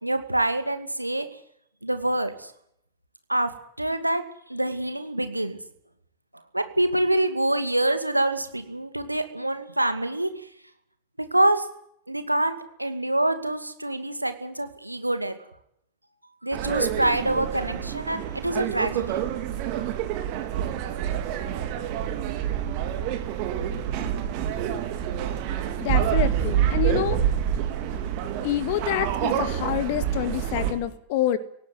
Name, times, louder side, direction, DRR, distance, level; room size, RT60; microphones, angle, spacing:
voice 1, 0.0-1.3 1.8-2.5 3.3-3.5 3.8-4.2 4.5-5.6 6.3-10.5 11.2-11.7 12.1-15.4 16.4-19.2, right 1 dB, 85° right, 9 dB, 2.3 m, -26 dB
sound 1, 16.5-30.7, right 10 dB, 45° right, 4.2 m, -27 dB
voice 2, 25.8-27.3 28.4-31.4, left 12 dB, 50° left, 13 dB, 2.2 m, -27 dB
18.5 x 17.5 x 9.5 m, 0.69 s
figure-of-eight pair, 90°, 0 cm